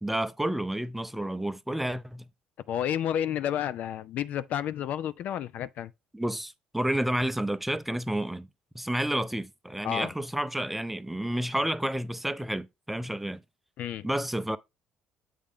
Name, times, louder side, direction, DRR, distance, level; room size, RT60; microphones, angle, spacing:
voice 1, 0.0-2.3 6.1-8.5 8.7-13.4 14.0-14.6, right 1 dB, 5° right, 0.5 m, -30 dB
voice 2, 2.7-5.9 9.8-10.1 13.8-14.1, left 10 dB, 60° left, 0.4 m, -31 dB
7.5 x 4.8 x 3.6 m
hypercardioid pair, 65°, 3 cm